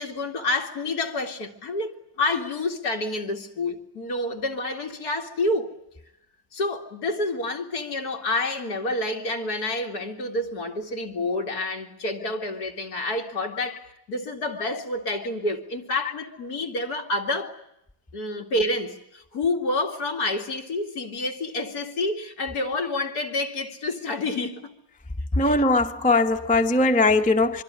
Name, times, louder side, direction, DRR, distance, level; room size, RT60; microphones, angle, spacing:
voice 1, 0.0-5.7 6.5-17.5 18.1-24.7 25.4-25.7, left 2 dB, 60° left, 2.9 m, -28 dB
voice 2, 25.4-27.6, left 2 dB, 5° left, 0.6 m, -20 dB
25.0 x 24.5 x 9.7 m
omnidirectional pair, 1.9 m